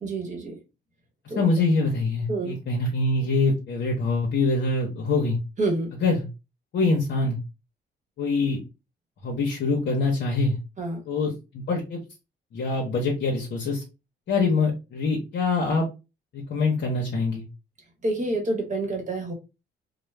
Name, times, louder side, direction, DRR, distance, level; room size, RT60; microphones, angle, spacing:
voice 1, 0.0-0.6 1.3-1.5 2.3-2.6 5.6-5.9 10.8-11.0 18.0-19.3, right 2 dB, 40° right, 0.9 m, -28 dB
voice 2, 1.2-5.4 6.0-6.3 6.7-7.4 8.2-8.6 9.2-10.6 11.1-12.0 12.5-13.8 14.3-15.8 16.3-17.4, left 3 dB, 60° left, 0.7 m, -24 dB
2.3 x 2.0 x 3.0 m
cardioid pair, 90°, 20 cm